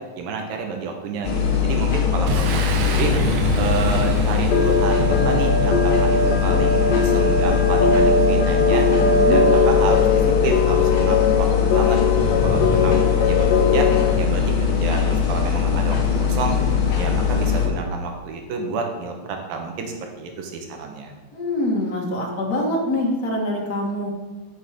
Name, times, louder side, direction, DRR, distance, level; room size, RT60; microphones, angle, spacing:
voice 1, 0.2-3.1 3.6-8.9 9.3-10.1 10.4-12.0 12.4-13.9 14.2-16.6 17.0-21.1, right 5 dB, 85° right, 3 dB, 3.0 m, -29 dB
sound 1, 1.2-17.7, left 6 dB, 50° left, 1.7 m, -21 dB
Boom, 2.3-5.9, right 4 dB, 70° right, 1.7 m, -29 dB
sound 2, 4.5-14.1, left 4 dB, 80° left, 2.4 m, -20 dB
voice 2, 9.0-9.4 21.3-24.1, left 1 dB, 35° left, -1 dB, 1.7 m, -24 dB
10.5 x 6.5 x 5.1 m, 1.2 s
omnidirectional pair, 3.9 m